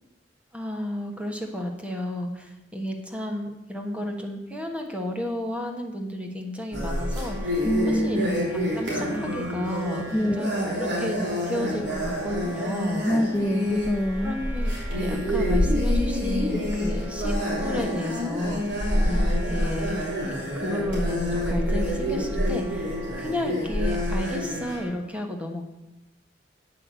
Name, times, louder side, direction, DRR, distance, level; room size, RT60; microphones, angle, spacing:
voice 1, 0.5-8.3 8.5-13.1 14.2-19.9 20.3-22.9 23.2-25.6, left 1 dB, 5° right, 2 dB, 1.3 m, -32 dB
sound 1, 6.7-24.9, equal, 75° right, 3.4 m, -27 dB
voice 2, 7.6-8.3 10.1-10.5 13.1-14.4, equal, 10° left, 7 dB, 0.3 m, -25 dB
8.5 x 5.9 x 8.1 m, 0.98 s
head